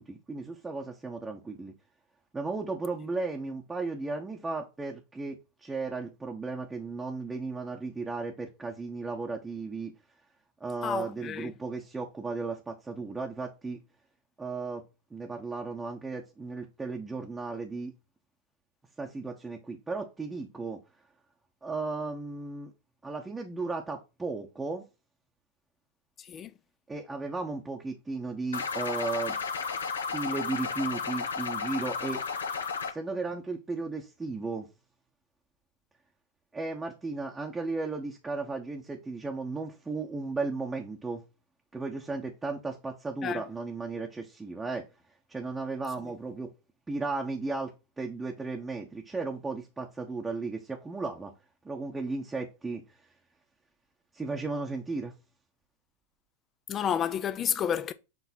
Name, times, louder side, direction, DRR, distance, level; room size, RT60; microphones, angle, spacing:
voice 1, 0.0-1.7 2.3-9.9 10.6-13.8 14.4-14.8 15.1-17.9 19.0-20.8 21.6-22.7 23.0-24.8 26.9-29.4 30.1-32.2 32.9-34.7 36.5-41.2 41.7-44.8 45.3-46.5 46.9-47.7 48.0-51.3 51.6-52.8 54.1-55.1, right 3 dB, 10° right, 1.0 m, -35 dB
voice 2, 10.8-11.5 26.2-26.5 43.2-43.4 56.7-57.9, left 8 dB, 25° left, 0.6 m, -30 dB
sound 1, 28.5-32.9, left 5 dB, 70° left, 0.8 m, -33 dB
7.2 x 3.3 x 4.2 m
figure-of-eight pair, 90°, 0 cm